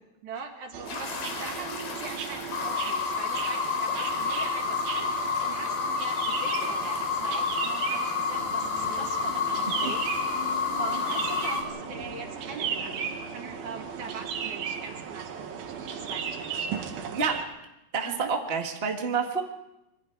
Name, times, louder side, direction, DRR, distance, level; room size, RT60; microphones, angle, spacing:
voice 1, 0.2-10.0 10.4-16.9 18.0-18.3, right 5 dB, 60° right, 2 dB, 3.5 m, -42 dB
sound 1, 0.7-17.4, right 7 dB, 85° right, 3.4 m, -36 dB
sound 2, 0.9-11.6, left 5 dB, 80° left, 4.5 m, -30 dB
sound 3, 8.3-13.8, left 4 dB, 60° left, 8.6 m, -45 dB
voice 2, 17.9-19.4, right 5 dB, 30° right, 2 dB, 1.2 m, -28 dB
26.0 x 23.0 x 4.7 m, 0.91 s
omnidirectional pair, 4.1 m